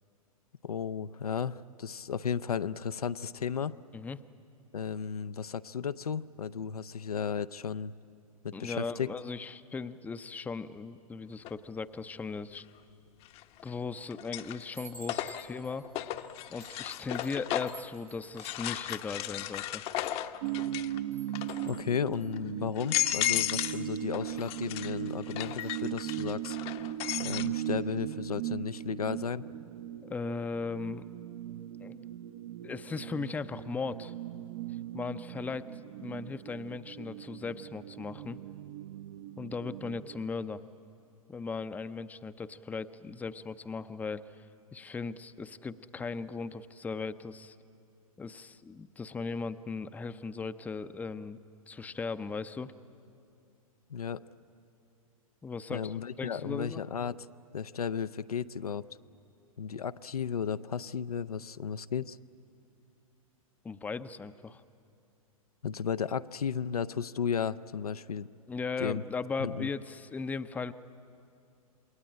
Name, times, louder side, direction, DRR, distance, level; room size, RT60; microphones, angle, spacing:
voice 1, 0.6-3.8 4.7-7.9 8.4-9.1 21.7-26.6 27.2-29.4 53.9-54.2 55.7-57.3 57.5-58.8 59.6-62.2 65.6-68.3 68.8-69.0 69.4-69.7, left 7 dB, 80° left, 13 dB, 0.6 m, -34 dB
voice 2, 8.5-12.7 13.6-15.9 16.5-19.8 30.0-31.1 31.8-32.2 32.6-34.1 34.9-38.4 39.4-40.6 41.3-44.2 44.7-47.6 48.2-51.4 51.7-52.7 55.4-56.8 63.6-64.6 68.5-70.7, left 4 dB, 10° left, 12 dB, 0.6 m, -38 dB
sound 1, 11.4-11.5 13.2-13.7 14.1-17.9 18.4-21.0 21.3-21.8 22.3-22.4 22.8-23.8 24.1-27.5, left 13 dB, 30° left, 0.8 m, -35 dB
Chime, 13.6-14.0 14.4-20.7 21.1-24.5 25.0-25.2 25.5-25.8, right 4 dB, 85° right, 6.8 m, -55 dB
sound 2, 20.4-40.2, right 13 dB, 50° right, 0.8 m, -39 dB
27.5 x 20.5 x 8.8 m, 2.6 s
figure-of-eight pair, 110°, 19 cm